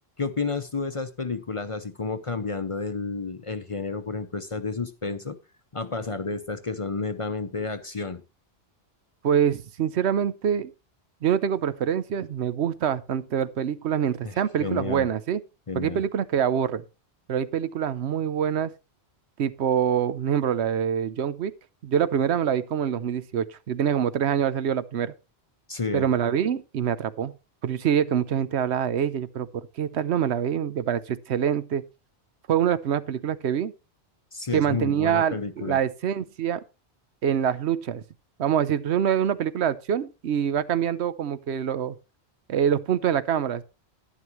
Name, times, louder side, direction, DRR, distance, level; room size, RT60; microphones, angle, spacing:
voice 1, 0.2-5.4 5.7-8.2 14.2-15.1 15.7-16.0 25.7-26.1 34.3-35.8, left 4 dB, 35° left, 0.7 m, -31 dB
voice 2, 9.2-10.7 11.2-15.4 15.7-16.8 17.3-18.7 19.4-21.5 21.8-25.1 25.9-27.3 27.6-31.8 32.5-33.7 34.5-36.6 37.2-38.0 38.4-42.0 42.5-43.6, right 8 dB, 80° right, 1.0 m, -25 dB
11.5 x 11.0 x 3.0 m
omnidirectional pair, 1.1 m